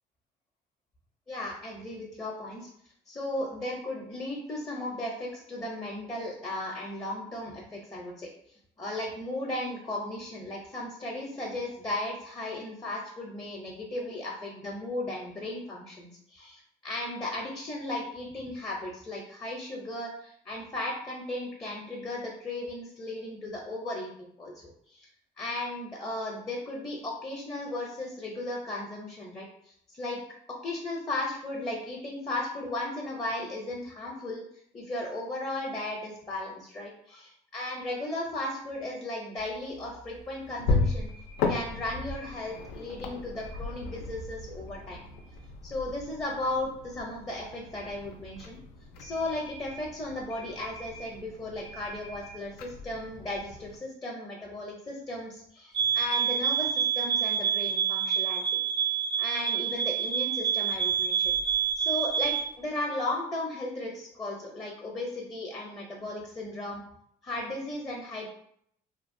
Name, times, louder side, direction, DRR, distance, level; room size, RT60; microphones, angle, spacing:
voice 1, 1.3-2.7 3.1-8.3 8.8-25.1 25.4-30.2 30.5-34.4 34.7-41.1 41.5-45.0 45.6-46.7 47.0-48.6 49.0-58.4 58.7-61.3 61.8-66.8 67.2-68.3, left 1 dB, 20° left, -2 dB, 0.5 m, -36 dB
sound 1, 39.4-53.8, left 3 dB, 90° left, 0.4 m, -36 dB
sound 2, 55.7-62.5, right 8 dB, 75° right, 0.5 m, -27 dB
2.7 x 2.1 x 2.5 m, 0.69 s
cardioid pair, 110°, 17 cm